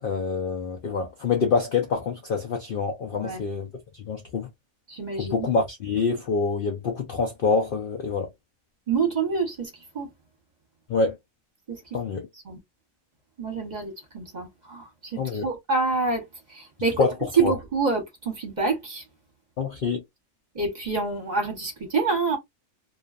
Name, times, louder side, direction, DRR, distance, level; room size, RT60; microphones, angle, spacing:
voice 1, 0.0-4.5 5.2-8.3 10.9-11.2 11.9-12.3 15.2-15.4 17.0-17.1 17.4-17.5 19.6-20.0, left 4 dB, 60° left, 0.5 m, -26 dB
voice 2, 3.1-3.4 4.9-5.5 8.9-9.7 9.9-10.1 11.7-11.8 12.4-12.6 13.4-17.0 17.3-19.0 20.5-22.4, right 4 dB, 40° right, 0.9 m, -27 dB
2.4 x 2.3 x 2.3 m
omnidirectional pair, 1.4 m